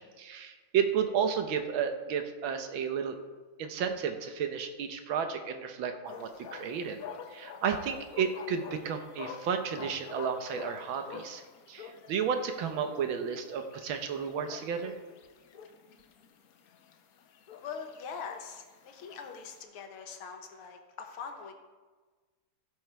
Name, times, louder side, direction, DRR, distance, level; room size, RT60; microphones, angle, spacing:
voice 1, 0.0-3.2 3.6-7.0 7.3-11.4 11.7-15.0, right 7 dB, 70° right, 7 dB, 1.6 m, -32 dB
sound 1, 6.1-19.6, left 7 dB, 65° left, 0.9 m, -48 dB
voice 2, 17.6-21.5, left 6 dB, 80° left, 5 dB, 2.0 m, -42 dB
16.0 x 5.5 x 4.5 m, 1.4 s
omnidirectional pair, 2.3 m